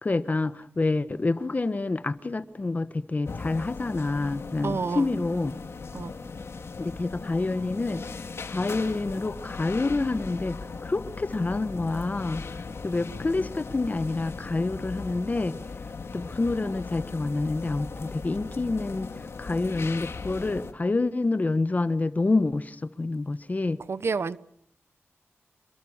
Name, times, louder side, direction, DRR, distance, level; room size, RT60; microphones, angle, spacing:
voice 1, 0.0-5.6 6.8-8.0 8.5-12.4 12.8-15.5 16.1-19.1 19.4-23.8, left 3 dB, 35° left, 1.2 m, -27 dB
sound 1, 3.2-20.7, left 4 dB, 65° left, 2.2 m, -38 dB
voice 2, 4.6-5.1 5.9-6.1 23.9-24.4, right 5 dB, 60° right, 1.0 m, -29 dB
27.5 x 22.0 x 7.3 m
wide cardioid pair, 100°, 5 cm